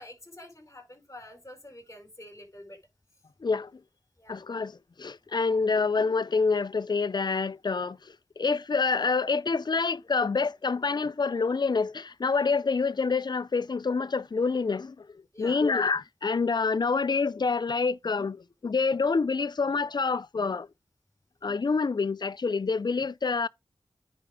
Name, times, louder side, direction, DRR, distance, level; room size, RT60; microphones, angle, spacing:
voice 1, 0.0-2.8 4.2-4.4 15.3-15.6, left 1 dB, 35° left, 4.7 m, -47 dB
voice 2, 3.4-3.7 4.3-15.1 15.4-20.7 21.4-23.5, left 4 dB, 55° left, 0.5 m, -27 dB
9.7 x 4.6 x 3.7 m
wide cardioid pair, 50°, 9 cm